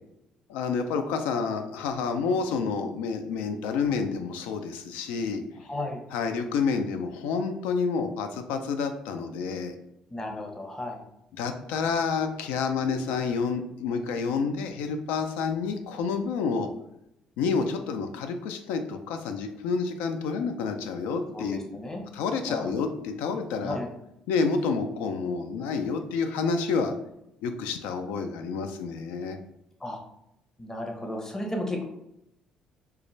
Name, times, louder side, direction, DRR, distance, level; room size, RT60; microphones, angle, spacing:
voice 1, 0.5-5.4 6.1-9.7 11.4-16.7 17.4-21.6 22.1-23.8 24.3-26.9 27.4-29.4, left 5 dB, 75° left, 6 dB, 0.3 m, -29 dB
voice 2, 5.6-6.0 10.1-11.0 21.3-22.0 22.5-22.8 23.6-23.9 29.8-30.0 30.6-31.8, left 1 dB, 20° left, 1 dB, 0.7 m, -34 dB
2.3 x 2.2 x 3.0 m, 0.83 s
hypercardioid pair, 55°, 3 cm